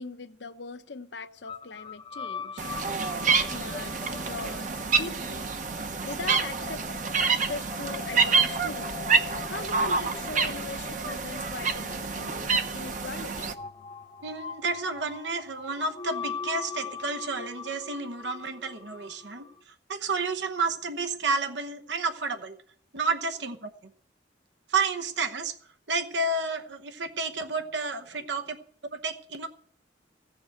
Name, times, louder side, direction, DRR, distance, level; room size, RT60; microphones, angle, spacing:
voice 1, 0.0-2.7 3.5-5.5 5.8-6.8 7.2-9.0 9.5-13.5, left 4 dB, 70° left, 11 dB, 0.8 m, -40 dB
sound 1, 1.5-19.6, left 6 dB, 30° left, 0.6 m, -42 dB
sound 2, 2.6-13.5, right 5 dB, 45° right, 0.9 m, -28 dB
voice 2, 14.2-22.6 22.9-23.9 24.7-25.5 25.9-28.6 28.9-29.5, right 3 dB, 70° right, 7 dB, 1.0 m, -31 dB
15.5 x 6.9 x 7.8 m, 0.63 s
head